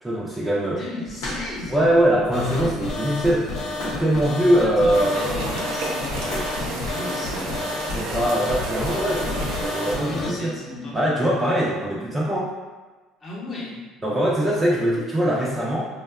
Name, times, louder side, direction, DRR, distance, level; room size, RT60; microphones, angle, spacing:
voice 1, 0.0-0.8 1.7-5.3 7.9-10.5 10.9-12.5 14.0-15.9, right 1 dB, 15° right, -6 dB, 0.5 m, -22 dB
voice 2, 0.6-1.9 4.5-6.1 6.5-7.6 10.0-11.2 13.2-13.9, left 1 dB, 40° left, -5 dB, 0.9 m, -35 dB
sound 1, 1.1-9.7, left 1 dB, 75° left, 0.8 m, -38 dB
sound 2, 2.3-10.3, left 3 dB, 55° left, 0.4 m, -30 dB
sound 3, 4.9-10.0, right 2 dB, 75° right, 0.4 m, -31 dB
2.6 x 2.2 x 2.2 m, 1.3 s
hypercardioid pair, 70°, 0 cm